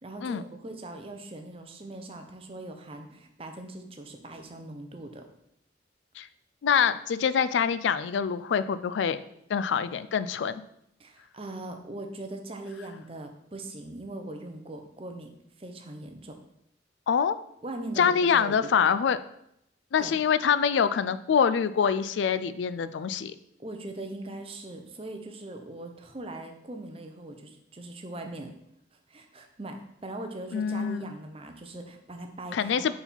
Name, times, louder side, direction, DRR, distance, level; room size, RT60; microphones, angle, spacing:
voice 1, 0.0-5.3 11.0-16.4 17.6-18.9 20.0-20.2 23.6-28.5 29.1-33.0, right 2 dB, 30° right, 5 dB, 0.6 m, -40 dB
voice 2, 6.6-9.2 9.5-10.6 17.1-17.4 18.0-19.2 19.9-23.3 30.5-31.1 32.5-33.0, left 7 dB, 80° left, 14 dB, 0.3 m, -25 dB
4.6 x 4.3 x 5.3 m, 0.76 s
head